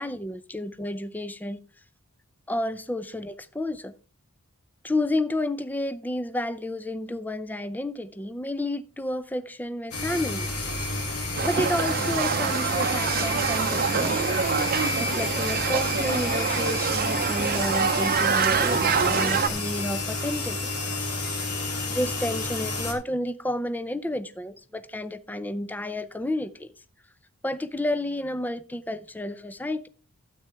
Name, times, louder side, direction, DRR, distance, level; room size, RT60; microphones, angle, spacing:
voice 1, 0.0-1.6 2.5-3.9 4.8-10.5 11.4-14.3 15.0-20.6 21.9-26.7 27.4-29.9, left 1 dB, 10° left, 0.5 m, -31 dB
sound 1, 9.9-22.9, left 2 dB, 90° left, 3.4 m, -30 dB
sound 2, 11.4-19.5, right 6 dB, 45° right, 0.7 m, -25 dB
12.5 x 8.2 x 3.4 m
head